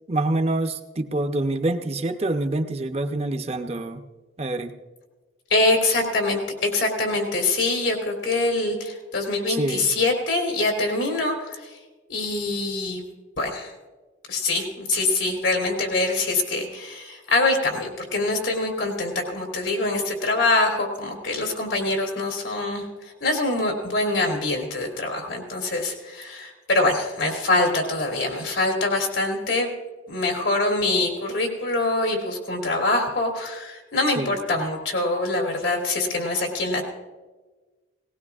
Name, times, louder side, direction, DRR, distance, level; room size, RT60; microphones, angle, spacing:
voice 1, 0.1-4.0 4.4-4.7 9.5-9.9 34.2-34.3, right 2 dB, 30° right, 7 dB, 0.7 m, -26 dB
voice 2, 5.5-11.8 12.1-13.0 13.4-13.7 14.3-29.7 30.1-36.8, left 2 dB, 90° left, 1 dB, 3.2 m, -24 dB
18.5 x 18.5 x 2.4 m, 1.3 s
head